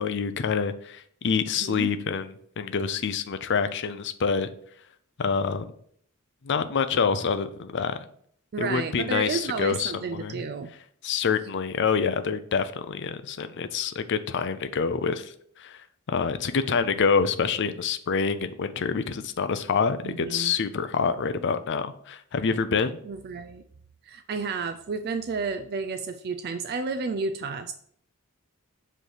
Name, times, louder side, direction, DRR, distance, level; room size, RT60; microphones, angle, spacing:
voice 1, 0.0-4.5 5.2-5.7 6.4-8.0 8.6-10.4 11.0-15.8 16.1-23.0, left 5 dB, 55° left, 11 dB, 0.5 m, -27 dB
voice 2, 1.6-1.9 8.5-10.7 20.0-20.5 23.0-23.6 24.0-27.7, right 4 dB, 45° right, 8 dB, 0.4 m, -31 dB
7.6 x 3.2 x 4.9 m, 0.63 s
head